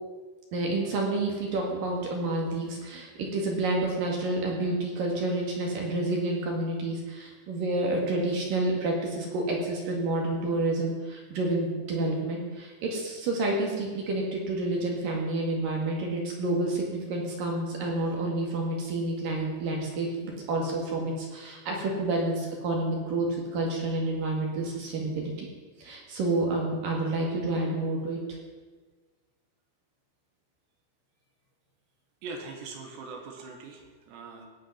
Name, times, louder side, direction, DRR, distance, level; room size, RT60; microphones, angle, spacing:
voice 1, 0.5-23.3 23.5-25.5 25.8-28.2, right 2 dB, 55° right, -1 dB, 3.2 m, -29 dB
voice 2, 32.2-34.5, right 3 dB, 70° right, 2 dB, 3.6 m, -41 dB
18.0 x 8.9 x 5.7 m, 1.4 s
omnidirectional pair, 5.3 m